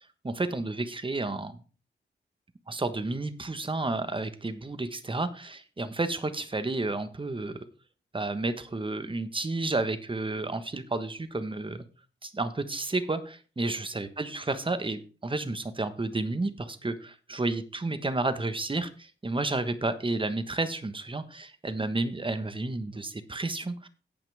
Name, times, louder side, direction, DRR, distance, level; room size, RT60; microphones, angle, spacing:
voice 1, 0.2-1.6 2.7-7.6 8.1-11.8 12.2-23.9, right 2 dB, 25° right, 10 dB, 1.3 m, -31 dB
17.0 x 5.9 x 3.5 m, 0.36 s
cardioid pair, 75°, 20 cm